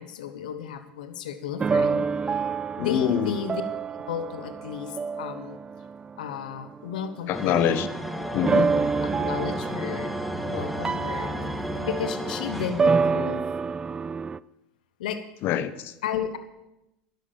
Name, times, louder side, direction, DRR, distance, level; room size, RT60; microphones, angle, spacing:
voice 1, 0.0-3.6 3.9-5.6 6.2-7.7 9.0-10.1 10.5-11.3 11.8-13.5 15.0-15.2 16.0-16.4, left 8 dB, 85° left, 10 dB, 1.1 m, -33 dB
sound 1, 1.6-7.9 8.4-14.4, right 5 dB, 20° right, 0.4 m, -28 dB
voice 2, 2.8-3.3 7.3-7.9 8.3-8.9 15.4-15.9, left 9 dB, 55° left, 14 dB, 1.1 m, -25 dB
sound 2, 7.3-13.3, equal, ahead, 1.5 m, -33 dB
11.5 x 10.5 x 7.1 m, 0.92 s
supercardioid pair, 100°, 4 cm